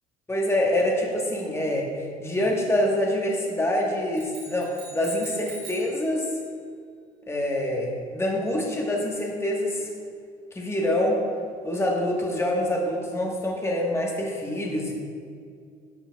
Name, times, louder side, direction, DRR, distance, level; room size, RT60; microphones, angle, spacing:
voice 1, 0.3-6.3 7.3-9.9 10.5-11.2 11.6-14.9, left 1 dB, 10° left, -1 dB, 1.2 m, -26 dB
sound 1, 4.1-6.0, right 3 dB, 70° right, 2.1 m, -42 dB
10.5 x 7.5 x 2.3 m, 2.2 s
hypercardioid pair, 65°, 21 cm